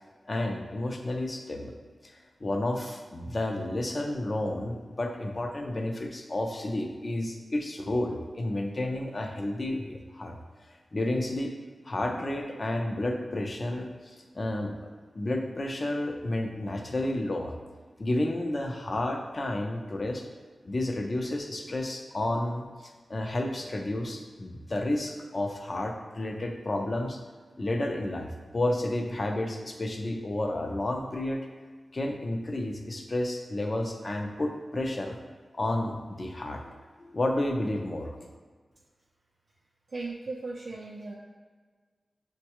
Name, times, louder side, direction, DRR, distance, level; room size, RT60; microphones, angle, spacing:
voice 1, 0.2-1.7 2.1-10.4 10.7-11.5 11.8-17.6 18.0-20.3 20.6-27.2 27.6-31.5 31.9-35.2 35.5-38.1, left 1 dB, 40° left, 3 dB, 0.5 m, -31 dB
voice 2, 39.9-41.1, right 3 dB, 70° right, -4 dB, 0.4 m, -37 dB
6.2 x 2.2 x 2.9 m, 1.5 s
wide cardioid pair, 85°, 0 cm